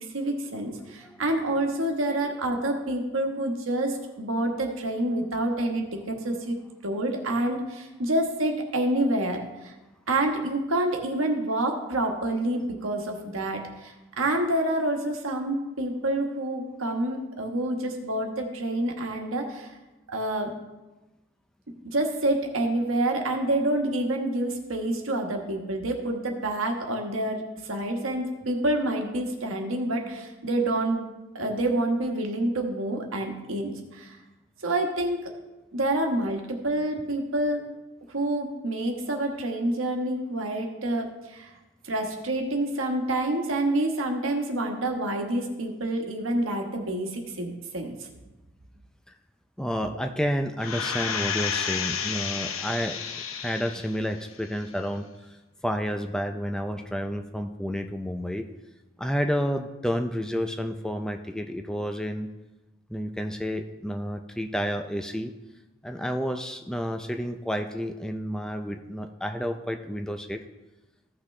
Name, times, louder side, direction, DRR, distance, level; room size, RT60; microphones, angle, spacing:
voice 1, 0.1-6.6 6.8-9.7 10.1-19.7 20.1-20.5 21.8-27.4 27.7-31.1 31.3-34.2 34.6-35.2 35.7-37.6 38.1-41.5 41.8-48.1 49.9-50.0, right 1 dB, 80° right, 3 dB, 1.3 m, -28 dB
voice 2, 0.8-1.2 49.6-55.4 55.6-58.4 59.0-62.3 62.9-65.3 65.8-70.4, equal, 5° left, 5 dB, 0.4 m, -30 dB
sound 1, 50.6-54.0 54.4-54.5, left 7 dB, 85° left, 0.8 m, -31 dB
15.0 x 6.0 x 3.2 m, 1.1 s
head